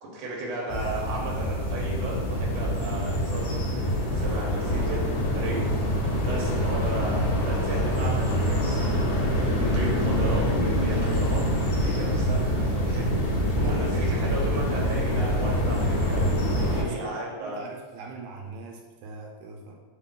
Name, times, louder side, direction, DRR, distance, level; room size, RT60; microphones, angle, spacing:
voice 1, 0.0-3.9 4.1-5.0 5.3-5.7 6.2-8.9 9.6-13.2 13.5-17.6, right 1 dB, 65° right, -3 dB, 1.3 m, -35 dB
sound 1, 0.7-16.8, equal, 75° left, 2.2 m, -25 dB
voice 2, 9.2-9.6 13.6-14.0 16.4-19.8, right 4 dB, 80° right, 0 dB, 1.9 m, -41 dB
4.8 x 2.3 x 3.7 m, 1.4 s
omnidirectional pair, 3.3 m